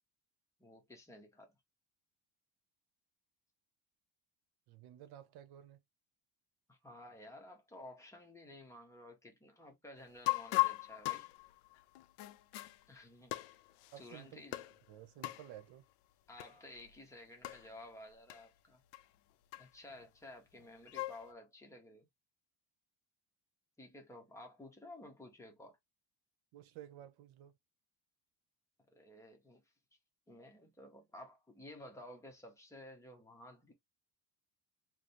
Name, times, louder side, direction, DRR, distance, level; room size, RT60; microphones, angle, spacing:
voice 1, 0.6-1.5 6.7-11.3 12.9-13.6 14.0-14.6 16.3-18.8 19.5-22.1 23.8-25.8 28.9-29.6 30.3-33.7, left 1 dB, 5° left, 0.7 m, -54 dB
voice 2, 4.7-5.8 13.9-14.5 14.9-15.8 26.5-27.6, right 11 dB, 60° right, 0.9 m, -53 dB
sound 1, 10.2-12.8 13.3-14.0 14.5-14.8 15.2-15.5 16.4-16.5 16.8-16.9 17.4-17.7 18.3-18.4 18.9-19.0 19.5-19.9 20.6-21.3, left 21 dB, 80° left, 0.6 m, -37 dB
3.3 x 2.1 x 4.2 m
cardioid pair, 175°, 42 cm